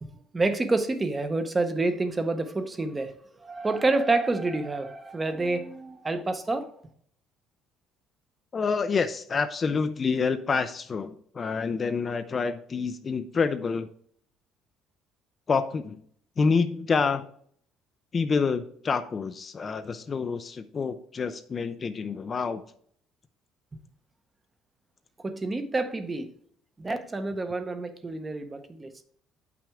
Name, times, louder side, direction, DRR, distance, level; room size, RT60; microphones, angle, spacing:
voice 1, 0.0-3.1 3.4-6.7 23.7-23.8 25.2-26.3 26.8-28.9, right 2 dB, 15° right, 0.7 m, -28 dB
voice 2, 8.5-13.9 15.5-16.0 16.4-17.3 18.1-22.6, left 5 dB, 30° left, 0.4 m, -27 dB
8.6 x 5.9 x 3.5 m
cardioid pair, 145°, 0 cm